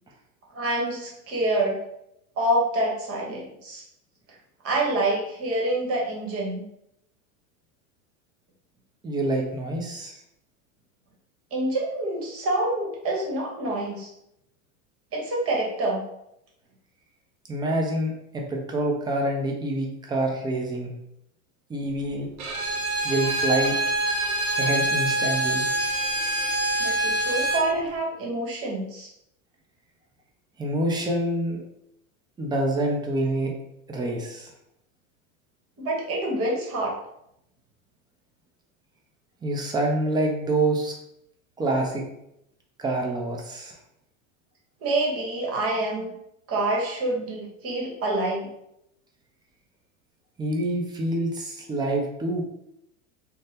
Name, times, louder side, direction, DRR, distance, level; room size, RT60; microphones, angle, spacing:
voice 1, 0.5-1.8 2.4-3.8 4.6-6.6 11.5-14.1 15.1-16.0 26.8-29.1 35.8-36.9 44.8-46.1 46.5-48.5, right 1 dB, 35° right, -2 dB, 1.1 m, -27 dB
voice 2, 9.0-10.2 17.5-20.9 21.7-22.3 23.0-23.8 24.6-25.8 30.6-31.6 32.4-33.5 33.9-34.5 39.4-40.9 41.6-42.0 42.8-43.8 50.4-52.4, right 1 dB, 10° right, 0 dB, 0.4 m, -26 dB
Bowed string instrument, 22.4-27.7, right 1 dB, 75° right, 0.8 m, -25 dB
2.6 x 2.1 x 3.4 m, 0.79 s
hypercardioid pair, 105°, 42 cm